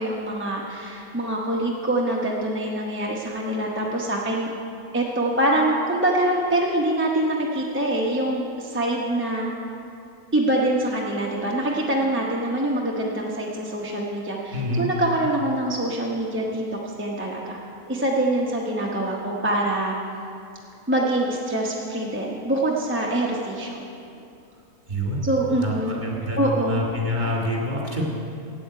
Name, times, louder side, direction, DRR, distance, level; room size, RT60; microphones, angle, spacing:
voice 1, 0.0-4.5 4.9-9.5 10.3-17.6 17.9-20.0 20.9-23.8 25.2-25.9 26.4-26.8, right 1 dB, 10° right, -3 dB, 0.7 m, -24 dB
voice 2, 14.5-14.9 24.9-25.3 25.6-28.0, left 1 dB, 30° right, -3 dB, 2.1 m, -27 dB
8.5 x 8.4 x 8.2 m, 2.6 s
omnidirectional pair, 1.5 m